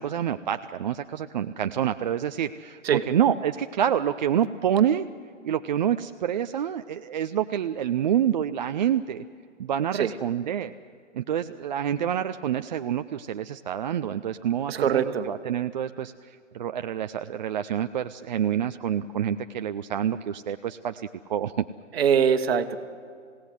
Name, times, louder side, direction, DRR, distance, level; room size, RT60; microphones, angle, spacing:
voice 1, 0.0-5.1 5.4-9.2 9.6-10.7 11.1-21.6, right 9 dB, 40° right, 9 dB, 0.5 m, -27 dB
voice 2, 14.7-15.3 21.9-22.8, right 7 dB, 55° right, 10 dB, 1.4 m, -22 dB
27.5 x 17.0 x 8.0 m, 2.1 s
figure-of-eight pair, 130°, 37 cm